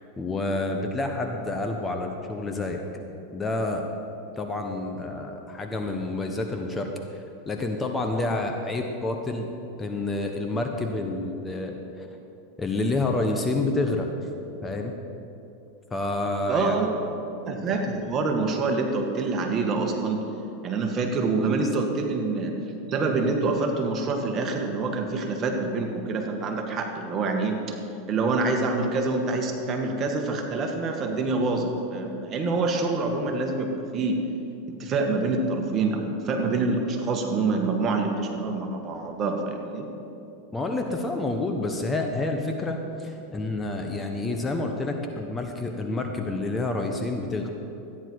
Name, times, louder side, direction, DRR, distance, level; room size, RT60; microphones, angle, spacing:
voice 1, 0.2-2.8 3.3-3.9 4.4-9.5 9.8-12.1 12.6-14.1 14.6-14.9 15.9-16.9 40.5-47.5, left 2 dB, 15° left, 3 dB, 1.1 m, -28 dB
voice 2, 16.5-16.9 17.5-20.2 20.6-22.5 22.9-27.8 28.1-34.2 34.7-39.9, right 3 dB, 35° right, 2 dB, 1.8 m, -26 dB
13.5 x 10.0 x 4.8 m, 2.8 s
hypercardioid pair, 110°, 0 cm